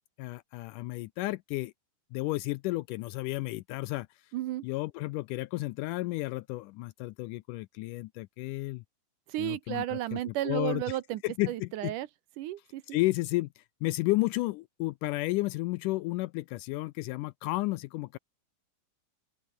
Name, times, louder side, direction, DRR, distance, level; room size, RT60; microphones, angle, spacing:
voice 1, 0.2-1.7 2.1-4.1 4.6-8.8 9.4-11.0 11.2-11.9 12.9-18.2, left 20 dB, 80° left, 1.9 m, -32 dB
voice 2, 4.3-4.6 9.3-11.2 11.5-12.1 12.4-13.0, right 14 dB, 75° right, 2.3 m, -33 dB
open air
omnidirectional pair, 4.0 m